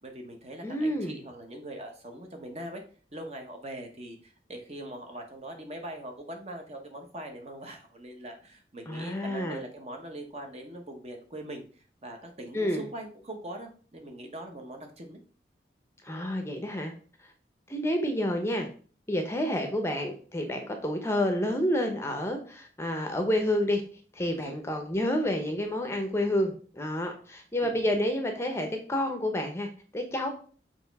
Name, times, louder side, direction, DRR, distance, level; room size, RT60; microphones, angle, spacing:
voice 1, 0.0-2.8 3.1-15.2 24.4-24.6 27.6-27.8, right 1 dB, 35° right, 3 dB, 1.0 m, -42 dB
voice 2, 0.6-1.2 8.9-9.6 12.5-12.8 16.0-16.9 17.7-18.7 19.1-23.8 24.1-30.3, left 1 dB, 15° left, 4 dB, 0.7 m, -29 dB
6.7 x 3.0 x 4.6 m, 0.41 s
head